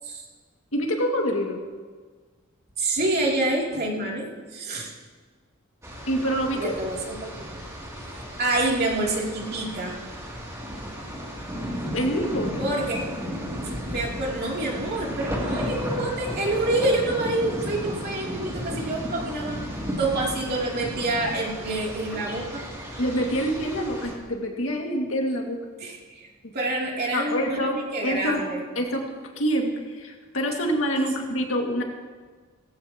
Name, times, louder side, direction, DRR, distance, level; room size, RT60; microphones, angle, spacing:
voice 1, 0.7-1.6 6.1-6.7 11.9-12.6 23.0-25.6 26.4-26.5 27.1-28.5 28.8-29.0 29.4-31.8, equal, 70° left, 1 dB, 2.1 m, -26 dB
voice 2, 2.8-4.9 6.5-7.6 8.4-10.0 12.6-13.1 13.9-19.6 20.0-22.6 25.8-26.3 26.5-28.6 31.0-31.1, right 2 dB, 50° right, -3 dB, 2.9 m, -27 dB
sound 1, 5.8-24.1, equal, 15° right, 2.7 m, -34 dB
17.5 x 15.5 x 2.9 m, 1.5 s
head